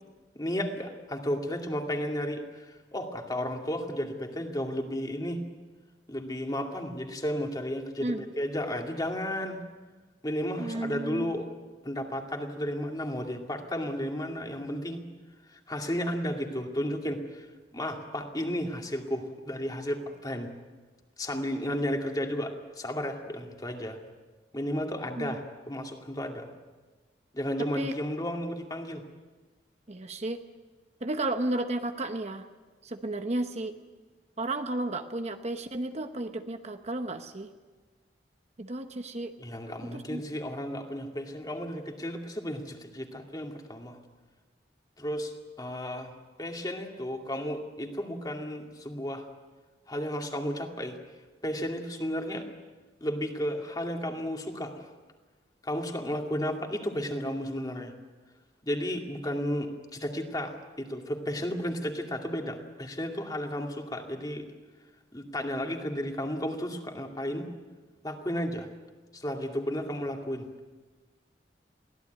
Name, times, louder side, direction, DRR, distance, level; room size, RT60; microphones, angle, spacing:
voice 1, 0.3-5.4 6.1-9.6 10.2-11.5 11.8-15.0 15.5-17.5 17.7-20.5 21.2-24.0 24.5-26.5 27.3-29.0 39.4-44.0 45.0-45.3 45.6-46.1 46.4-49.3 49.9-51.0 51.4-52.5 53.0-54.9 55.6-57.9 58.6-64.5 65.1-67.4 68.0-68.7 69.1-70.5, equal, 20° left, 3 dB, 2.4 m, -33 dB
voice 2, 10.6-11.3 25.2-25.4 27.7-27.9 29.9-30.4 31.0-32.5 32.8-33.8 34.4-37.5 38.6-39.3 39.9-40.2, right 2 dB, 40° right, 7 dB, 1.0 m, -33 dB
23.0 x 16.5 x 9.3 m, 1.3 s
head